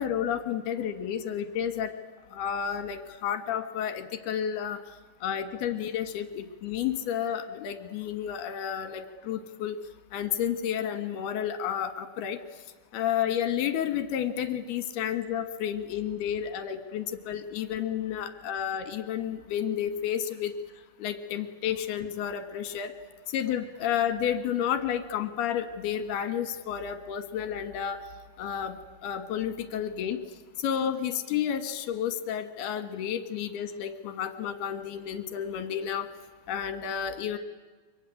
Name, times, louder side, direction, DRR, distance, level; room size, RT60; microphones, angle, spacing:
voice 1, 0.0-1.9 2.3-4.8 5.2-9.8 10.1-12.4 12.9-20.5 21.0-22.9 23.3-28.0 28.4-28.8 29.0-30.2 30.6-36.1 36.5-37.4, left 9 dB, 65° left, 9 dB, 2.8 m, -31 dB
25.5 x 23.5 x 9.9 m, 1.3 s
omnidirectional pair, 6.0 m